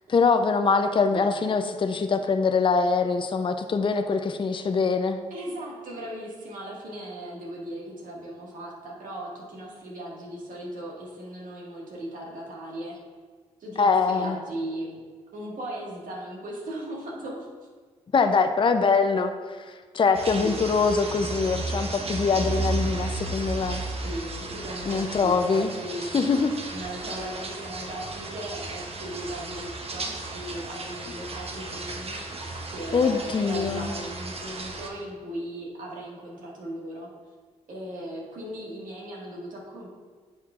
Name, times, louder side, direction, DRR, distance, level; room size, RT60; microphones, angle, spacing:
voice 1, 0.1-5.2 13.8-14.4 18.1-23.8 24.8-25.7 26.1-26.5 32.9-33.9, left 4 dB, 35° left, 7 dB, 0.5 m, -23 dB
voice 2, 5.3-13.0 13.6-15.0 15.3-17.5 20.4-20.6 24.0-26.3 26.7-32.2 32.7-37.1 37.7-39.9, right 1 dB, 70° right, -3 dB, 1.8 m, -37 dB
sound 1, 20.1-34.9, right 2 dB, 45° right, 1.1 m, -34 dB
9.9 x 5.8 x 2.4 m, 1.5 s
supercardioid pair, 50°, 14 cm